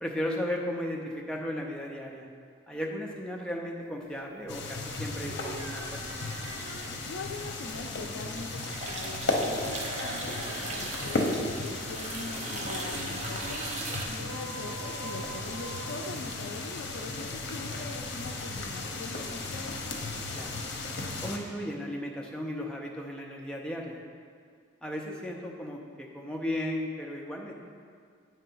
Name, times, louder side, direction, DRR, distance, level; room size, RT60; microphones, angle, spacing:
voice 1, 0.0-2.3 2.7-6.0 6.3-6.4 14.2-14.3 20.3-20.5 21.2-24.0 24.8-27.5, left 1 dB, 5° left, -1 dB, 0.5 m, -35 dB
sound 1, 4.5-21.4, left 2 dB, 55° left, 0.8 m, -35 dB
sound 2, 5.2-7.0 9.5-11.1 11.4-11.7 13.9-16.8, right 3 dB, 85° right, 0.6 m, -44 dB
sound 3, 5.9-6.5 6.8-14.0, right 2 dB, 35° right, 0.6 m, -39 dB
voice 2, 7.0-13.6 14.1-19.8, left 3 dB, 75° left, 2 dB, 0.4 m, -42 dB
8.3 x 3.3 x 5.5 m, 2.1 s
head